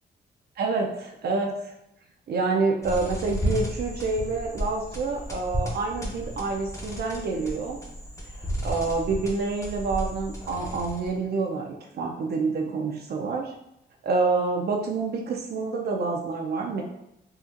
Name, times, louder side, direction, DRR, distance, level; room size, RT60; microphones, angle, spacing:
voice 1, 0.6-1.6 2.3-7.8 8.6-13.5 14.0-16.8, right 4 dB, 60° right, 1 dB, 0.5 m, -27 dB
sound 1, 2.8-11.2, equal, 15° left, 0.8 m, -33 dB
3.8 x 2.4 x 2.5 m, 0.84 s
cardioid pair, 85°, 18 cm